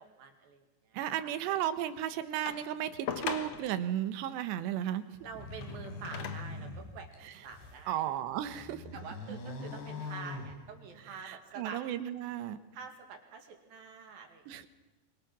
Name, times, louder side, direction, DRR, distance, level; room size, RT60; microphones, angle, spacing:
voice 1, 0.0-1.4 5.2-8.0 8.9-11.8 12.7-14.7, right 6 dB, 60° right, 4 dB, 3.8 m, -47 dB
voice 2, 0.9-5.2 7.2-7.3 7.9-8.9 9.3-9.4 11.1-12.6 14.5-14.7, right 11 dB, 90° right, 11 dB, 3.3 m, -34 dB
sound 1, 2.5-3.9 5.4-6.6 7.4-7.5, left 7 dB, 60° left, 1.7 m, -40 dB
sound 2, 5.2-7.9 8.3-11.2, left 3 dB, 90° left, 5.7 m, -43 dB
25.5 x 23.5 x 6.1 m, 1.0 s
omnidirectional pair, 4.9 m